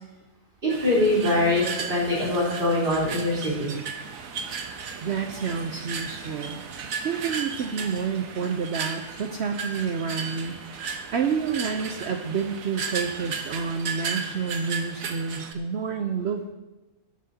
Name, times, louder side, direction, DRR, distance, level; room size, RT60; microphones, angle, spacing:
voice 1, 0.6-3.8, left 1 dB, 45° right, -5 dB, 4.4 m, -23 dB
sound 1, 0.7-15.5, right 5 dB, 90° right, 1.3 m, -35 dB
voice 2, 5.0-16.4, right 6 dB, 60° right, 4 dB, 0.9 m, -29 dB
17.0 x 11.5 x 2.8 m, 1.1 s
omnidirectional pair, 1.4 m